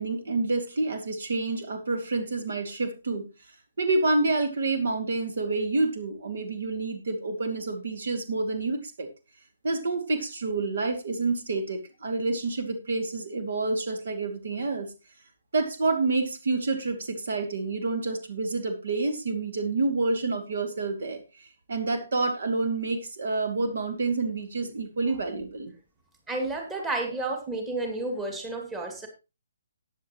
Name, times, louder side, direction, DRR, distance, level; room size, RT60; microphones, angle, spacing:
voice 1, 0.0-3.3 3.8-9.1 9.6-14.9 15.5-25.7, right 3 dB, 60° right, 8 dB, 2.4 m, -28 dB
voice 2, 26.3-29.1, right 2 dB, 10° right, 3 dB, 2.5 m, -31 dB
14.5 x 9.6 x 3.1 m, 0.29 s
figure-of-eight pair, 140°, 0 cm